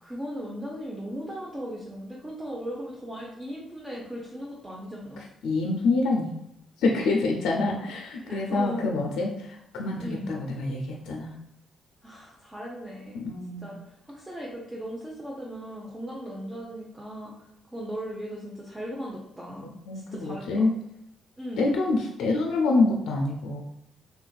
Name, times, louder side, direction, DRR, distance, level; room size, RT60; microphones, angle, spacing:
voice 1, 0.0-5.2 8.2-8.8 10.0-10.4 12.0-13.3 13.6-19.7 20.1-20.7 21.4-21.7, equal, 15° right, -4 dB, 0.6 m, -37 dB
voice 2, 5.4-6.3 6.8-11.3 13.1-13.7 19.9-20.7 21.6-23.6, left 3 dB, 85° left, 0 dB, 0.4 m, -26 dB
3.6 x 2.4 x 2.2 m, 0.80 s
cardioid pair, 90°, 0 cm